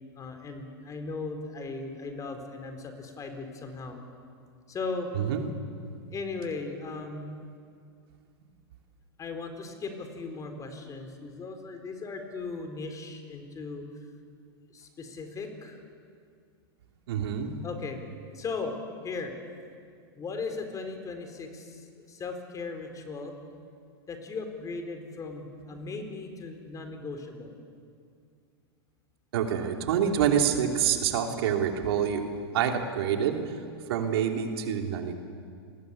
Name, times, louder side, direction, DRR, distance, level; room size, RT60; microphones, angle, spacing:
voice 1, 0.2-4.0 4.7-5.1 6.1-7.3 9.2-13.8 14.7-15.8 17.6-18.0 18.3-18.7 19.0-19.3 20.2-23.3 24.1-27.5, left 4 dB, 25° left, 6 dB, 4.1 m, -37 dB
voice 2, 17.1-17.5 29.3-32.2 32.5-33.4 33.9-35.2, right 8 dB, 70° right, 3 dB, 2.9 m, -26 dB
29.0 x 20.0 x 8.5 m, 2.3 s
hypercardioid pair, 105°, 13 cm